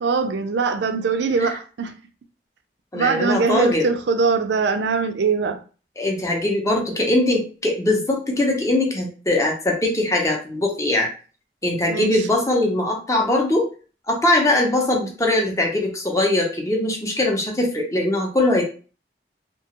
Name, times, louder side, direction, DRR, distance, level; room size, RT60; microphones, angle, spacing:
voice 1, 0.0-1.9 2.9-5.6 11.9-12.2, right 4 dB, 85° right, 7 dB, 0.4 m, -22 dB
voice 2, 2.9-3.9 6.0-11.1 11.6-13.7 14.1-18.6, left 1 dB, 20° left, 0 dB, 0.6 m, -21 dB
2.8 x 2.2 x 2.9 m, 0.37 s
head